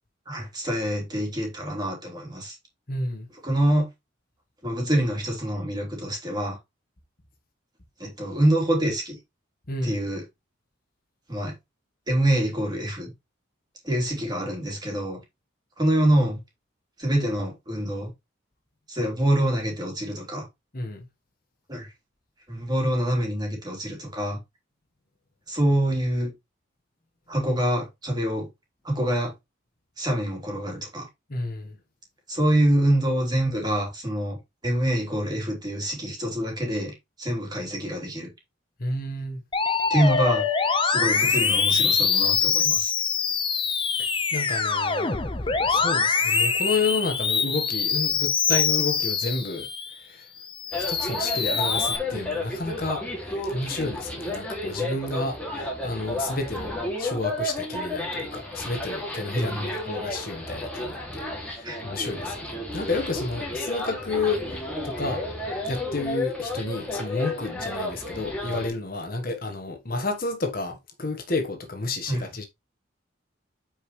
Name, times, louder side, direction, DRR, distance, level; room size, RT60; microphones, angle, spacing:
voice 1, 0.2-2.6 3.4-3.9 4.6-6.6 8.0-9.2 9.8-10.2 11.3-11.5 12.1-13.1 13.8-15.2 15.8-16.4 17.0-18.1 18.9-20.5 21.7-21.9 22.5-24.4 25.5-26.3 27.3-28.5 28.8-29.3 30.0-31.1 32.3-34.4 34.6-38.3 39.9-40.5 40.8-42.9 59.3-59.7 61.6-61.8 72.1-72.2, right 1 dB, 20° right, 3.3 m, -25 dB
voice 2, 2.9-3.3 9.7-10.0 20.7-21.0 31.3-31.8 38.8-39.4 44.0-45.1 45.6-49.7 50.0-50.3 50.7-53.1 53.4-56.7 57.0-65.2 65.7-72.4, left 3 dB, 45° left, 1.3 m, -31 dB
Musical instrument, 39.5-49.9 50.4-52.0, left 5 dB, 25° left, 0.9 m, -24 dB
sound 1, 50.7-68.7, left 2 dB, 5° left, 2.4 m, -32 dB
9.0 x 5.0 x 3.2 m
head